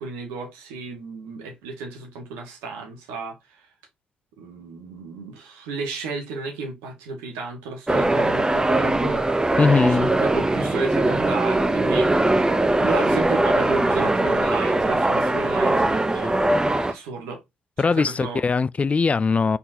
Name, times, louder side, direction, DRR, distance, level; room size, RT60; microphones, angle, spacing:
voice 1, 0.0-3.3 4.4-9.2 10.0-12.1 12.8-16.4 16.9-17.4 17.8-18.4, right 4 dB, 80° right, 1.5 m, -33 dB
sound 1, 7.9-16.9, right 2 dB, 20° right, 0.7 m, -21 dB
voice 2, 9.6-10.1 17.8-19.6, left 4 dB, 35° left, 0.4 m, -20 dB
4.3 x 4.0 x 2.7 m
hypercardioid pair, 45°, 4 cm